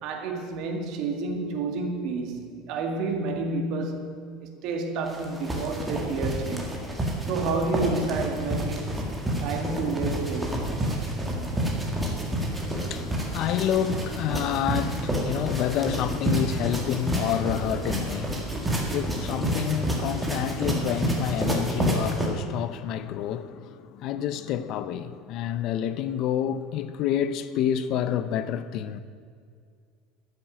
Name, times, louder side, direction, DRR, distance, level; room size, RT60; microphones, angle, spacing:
voice 1, 0.0-6.8 7.3-9.1 9.4-10.8, right 3 dB, 45° right, 1.9 m, -30 dB
sound 1, 5.1-22.3, right 1 dB, 5° right, 1.8 m, -29 dB
voice 2, 12.5-29.0, left 10 dB, 40° left, 0.5 m, -29 dB
13.0 x 7.4 x 9.4 m
cardioid pair, 175°, 0 cm